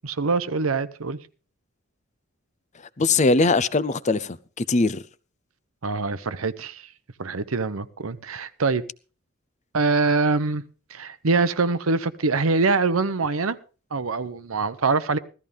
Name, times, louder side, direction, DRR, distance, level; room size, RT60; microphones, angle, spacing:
voice 1, 0.0-1.2 5.8-6.9 7.2-8.8 9.7-10.6 10.9-13.6 13.9-15.2, right 3 dB, 85° right, 0.9 m, -24 dB
voice 2, 3.0-5.0, left 3 dB, 35° left, 0.6 m, -21 dB
16.0 x 13.5 x 3.5 m
head